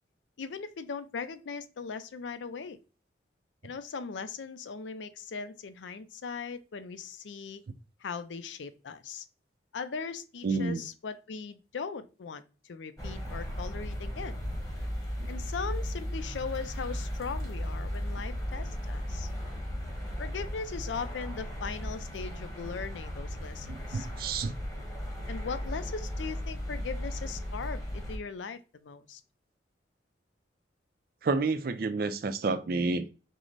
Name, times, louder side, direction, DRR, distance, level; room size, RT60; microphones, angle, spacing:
voice 1, 0.4-2.8 3.6-7.6 8.0-9.2 9.7-14.4 15.3-19.3 20.2-24.1 25.3-29.2, left 5 dB, 85° left, 0.4 m, -39 dB
voice 2, 10.4-10.8 23.7-24.5 31.2-33.0, right 3 dB, 55° right, 0.4 m, -29 dB
sound 1, 13.0-28.2, equal, 20° left, 1.2 m, -36 dB
4.6 x 2.1 x 3.8 m
head